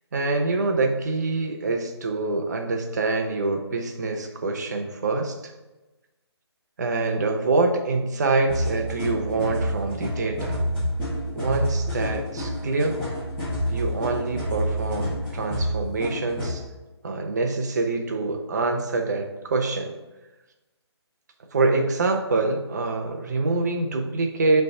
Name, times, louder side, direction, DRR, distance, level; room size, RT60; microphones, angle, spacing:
voice 1, 0.1-5.5 6.8-10.6 11.3-13.0 13.7-16.6 17.0-20.0 21.5-24.6, right 3 dB, 40° right, 4 dB, 0.7 m, -25 dB
sound 1, 8.5-16.6, equal, 5° left, 1.6 m, -28 dB
5.1 x 3.4 x 5.4 m, 1.1 s
hypercardioid pair, 165°, 14 cm